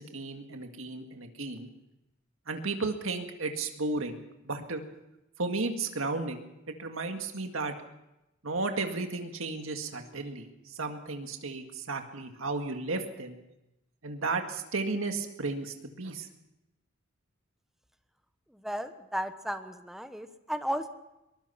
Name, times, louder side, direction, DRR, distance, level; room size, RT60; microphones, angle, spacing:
voice 1, 0.0-1.7 2.5-4.2 4.4-4.8 5.4-6.4 6.7-7.7 8.4-13.3 14.0-16.3, right 3 dB, 75° right, 5 dB, 2.0 m, -34 dB
voice 2, 18.6-20.9, equal, ahead, 8 dB, 1.1 m, -34 dB
23.0 x 20.0 x 5.8 m, 0.93 s
head